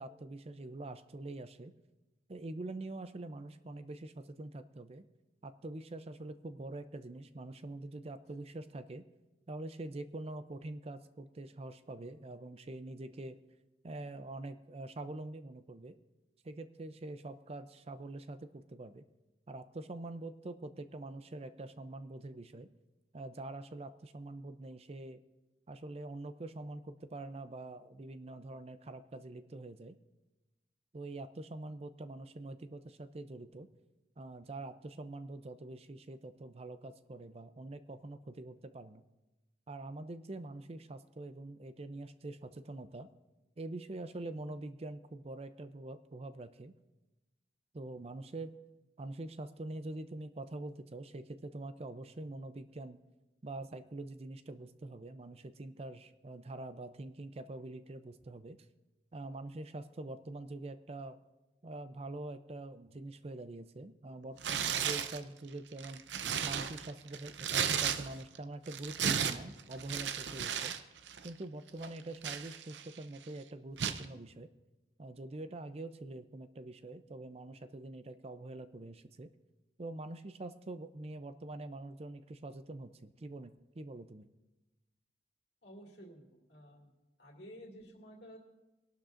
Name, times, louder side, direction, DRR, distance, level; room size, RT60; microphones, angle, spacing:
voice 1, 0.0-1.7 2.3-5.1 5.4-9.0 9.5-13.4 13.8-16.0 16.4-19.0 19.5-22.7 23.1-25.2 25.7-30.0 30.9-33.7 34.2-39.0 39.7-43.1 43.6-46.7 47.7-48.5 49.0-53.0 53.4-58.6 59.1-61.2 61.6-66.0 66.4-70.7 71.2-74.5 75.0-79.3 79.8-84.3, right 2 dB, 35° right, 11 dB, 0.5 m, -45 dB
Tearing, 64.4-65.2 65.7-68.4 68.7-70.8 71.1-71.3 71.8-73.0 73.8-74.0, right 8 dB, 90° right, 0.6 m, -34 dB
voice 2, 85.6-86.9 87.2-88.4, equal, 70° left, -1 dB, 2.3 m, -52 dB
22.5 x 12.0 x 2.5 m, 1.1 s
head